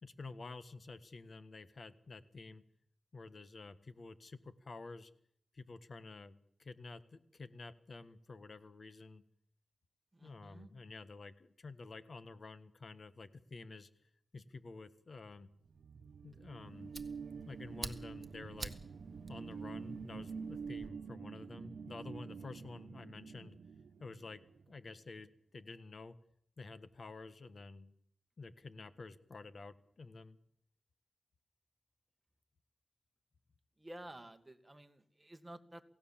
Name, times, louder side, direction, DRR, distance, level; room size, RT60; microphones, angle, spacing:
voice 1, 0.0-2.6 3.1-5.1 5.5-9.2 10.2-13.9 14.3-15.5 16.2-16.9 17.5-18.8 19.3-23.6 24.0-26.2 26.6-27.9 28.4-30.4, left 3 dB, 55° left, 12 dB, 1.4 m, -50 dB
voice 2, 10.1-10.7 33.8-35.8, right 1 dB, 15° right, 7 dB, 2.0 m, -52 dB
sound 1, 15.5-24.8, right 5 dB, 85° right, 1.1 m, -47 dB
Fire, 16.3-20.9, right 3 dB, 30° right, 1.6 m, -50 dB
28.0 x 17.0 x 7.4 m, 0.69 s
wide cardioid pair, 85°, 0 cm